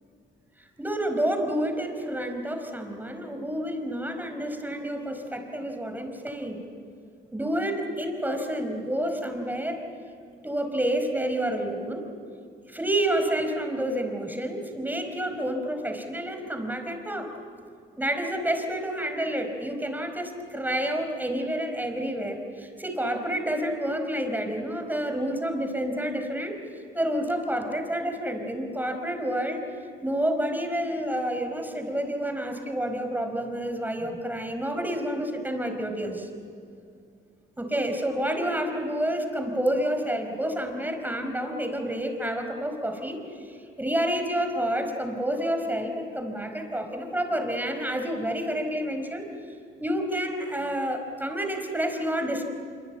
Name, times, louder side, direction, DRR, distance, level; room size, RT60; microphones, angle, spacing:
voice 1, 0.6-6.6 7.3-9.8 10.4-12.0 12.7-17.3 18.0-26.5 26.9-29.6 30.0-36.3 37.6-49.3 49.8-52.4, right 1 dB, 10° right, 5 dB, 4.8 m, -29 dB
26.0 x 24.0 x 9.1 m, 2.3 s
cardioid pair, 90°, 20 cm